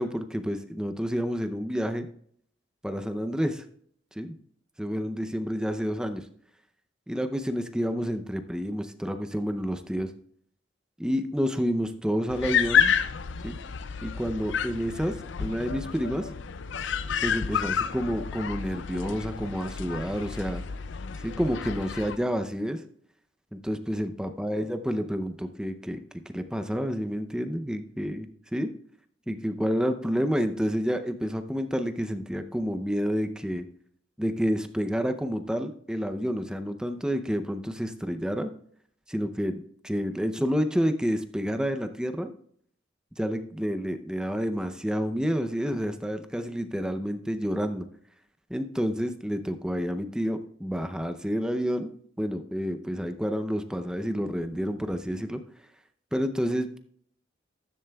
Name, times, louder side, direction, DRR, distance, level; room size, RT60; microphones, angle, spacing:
voice 1, 0.0-2.1 2.8-3.6 4.2-4.3 4.8-6.2 7.1-10.1 11.0-13.0 13.4-13.6 14.0-15.1 15.4-16.3 17.2-20.6 21.2-22.8 23.5-28.7 29.3-33.6 34.2-38.5 39.1-42.3 43.2-47.9 48.5-51.9 52.2-55.4 56.1-56.8, equal, 5° right, 8 dB, 0.5 m, -29 dB
sound 1, 12.3-22.2, left 7 dB, 65° left, 0.5 m, -30 dB
14.5 x 11.0 x 2.3 m, 0.63 s
head